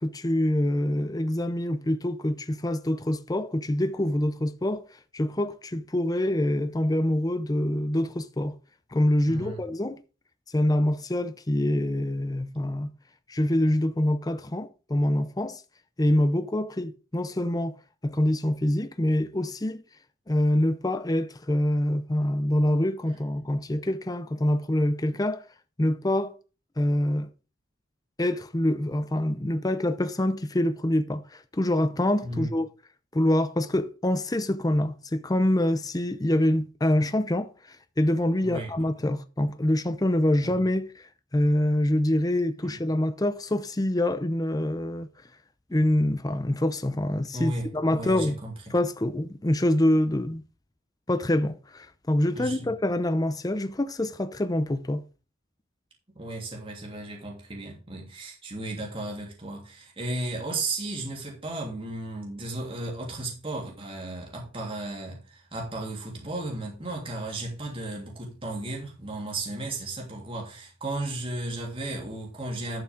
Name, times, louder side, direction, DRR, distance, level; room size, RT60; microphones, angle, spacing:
voice 1, 0.0-4.9 5.1-8.6 8.9-10.0 10.5-12.9 13.3-15.6 16.0-17.8 18.0-19.8 20.3-25.4 25.8-26.3 26.8-27.3 28.2-32.7 33.1-45.1 45.7-48.4 48.7-50.4 51.1-55.0, left 1 dB, 20° left, 0.6 m, -25 dB
voice 2, 9.3-9.6 32.2-32.5 38.4-38.7 40.4-40.5 42.6-42.8 47.3-48.7 52.3-52.7 56.1-72.8, right 2 dB, 25° right, 3.1 m, -35 dB
12.0 x 7.1 x 3.7 m
head